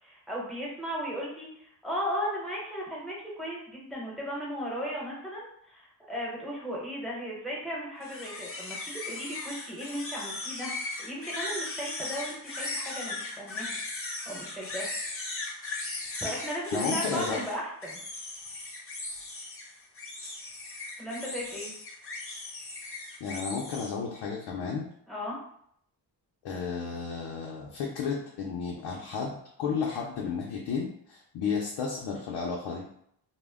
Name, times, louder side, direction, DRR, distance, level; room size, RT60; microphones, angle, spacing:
voice 1, 0.0-13.8 14.3-14.9 16.2-18.0 21.0-21.7 25.1-25.4, equal, ahead, -5 dB, 0.9 m, -36 dB
sound 1, 8.0-23.9, left 2 dB, 30° left, 0.6 m, -37 dB
voice 2, 16.7-17.4 23.2-24.9 26.4-32.9, left 5 dB, 85° left, -2 dB, 0.6 m, -33 dB
2.1 x 2.1 x 3.4 m, 0.69 s
cardioid pair, 90°, 42 cm